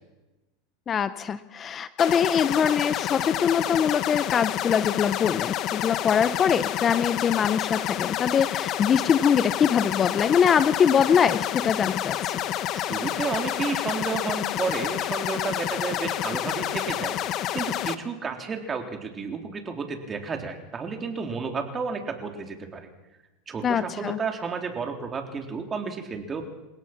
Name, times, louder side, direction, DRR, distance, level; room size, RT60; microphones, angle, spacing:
voice 1, 0.9-12.4 23.6-24.2, left 7 dB, 30° left, 14 dB, 0.8 m, -23 dB
sound 1, 2.0-18.0, left 12 dB, 45° left, 1.4 m, -29 dB
voice 2, 12.7-22.9 23.5-26.5, right 5 dB, 25° right, 4 dB, 3.7 m, -32 dB
28.5 x 17.0 x 6.1 m, 1.1 s
supercardioid pair, 115°, 0 cm